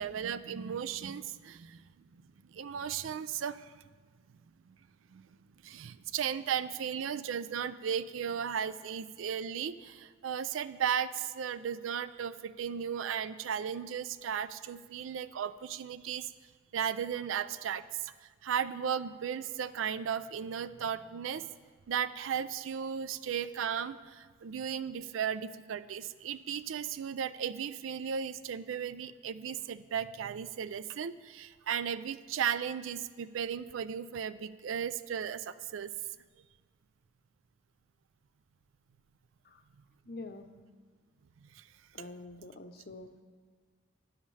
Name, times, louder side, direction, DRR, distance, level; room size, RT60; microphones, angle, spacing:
voice 1, 0.0-1.8 2.1-3.8 5.1-5.3 5.6-16.3 16.7-21.5 21.9-35.9 41.5-41.6, right 8 dB, 80° right, 15 dB, 0.4 m, -35 dB
voice 2, 40.0-40.5 41.9-43.1, left 2 dB, 50° left, 7 dB, 0.7 m, -46 dB
13.0 x 9.6 x 3.3 m, 1.5 s
head